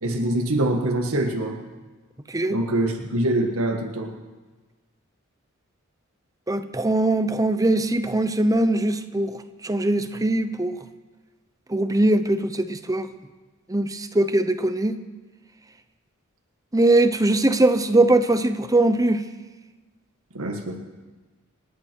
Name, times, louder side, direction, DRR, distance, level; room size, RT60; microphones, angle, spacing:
voice 1, 0.0-1.6 2.5-4.1 20.3-20.8, right 1 dB, 90° right, 3 dB, 1.7 m, -24 dB
voice 2, 6.5-9.4 9.6-10.7 11.7-13.1 13.7-15.0 16.7-19.2, right 2 dB, 15° right, 10 dB, 0.8 m, -21 dB
26.5 x 11.0 x 4.6 m, 1.3 s
head